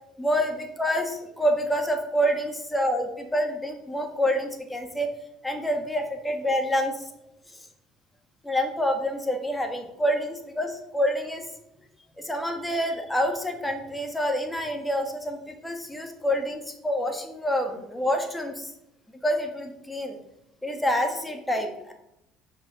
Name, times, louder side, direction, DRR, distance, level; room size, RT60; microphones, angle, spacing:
voice 1, 0.2-5.1 5.4-7.0 8.4-11.5 12.2-18.7 19.2-20.2 20.6-21.9, equal, 10° left, 4 dB, 1.5 m, -27 dB
6.1 x 5.3 x 5.2 m, 0.83 s
hypercardioid pair, 70°, 0 cm